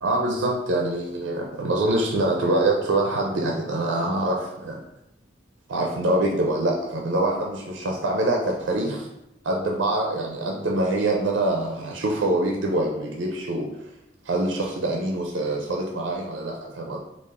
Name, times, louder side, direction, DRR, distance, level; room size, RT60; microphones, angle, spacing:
voice 1, 0.0-4.8 5.7-9.1 9.4-13.7 14.2-17.0, right 2 dB, 85° right, 0 dB, 0.5 m, -25 dB
3.4 x 2.4 x 3.5 m, 0.86 s
head